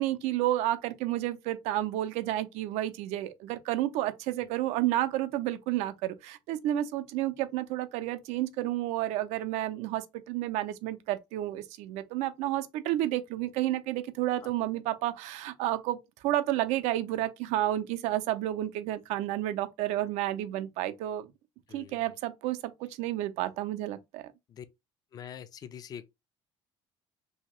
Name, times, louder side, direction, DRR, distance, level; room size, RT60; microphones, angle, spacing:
voice 1, 0.0-16.0 16.2-21.3 21.7-24.3, right 14 dB, 80° right, 0.5 m, -31 dB
voice 2, 21.7-22.1 24.5-24.7 25.1-26.1, left 8 dB, 35° left, 0.3 m, -44 dB
2.8 x 2.7 x 3.0 m
cardioid pair, 120°, 11 cm